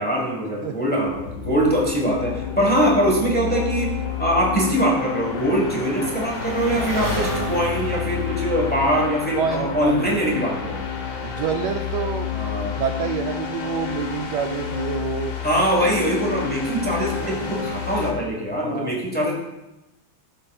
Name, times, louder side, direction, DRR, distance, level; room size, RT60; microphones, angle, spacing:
voice 1, 0.0-10.8 12.3-12.8 15.4-19.3, equal, 5° left, -2 dB, 0.9 m, -22 dB
Engine, 0.6-18.8, right 1 dB, 10° right, 1.3 m, -37 dB
sound 1, 1.1-18.1, left 9 dB, 60° left, 1.6 m, -30 dB
voice 2, 9.4-10.1 11.2-12.3 12.8-15.4 18.6-19.0, right 7 dB, 85° right, 4 dB, 0.9 m, -27 dB
12.5 x 6.6 x 2.4 m, 0.98 s
omnidirectional pair, 2.4 m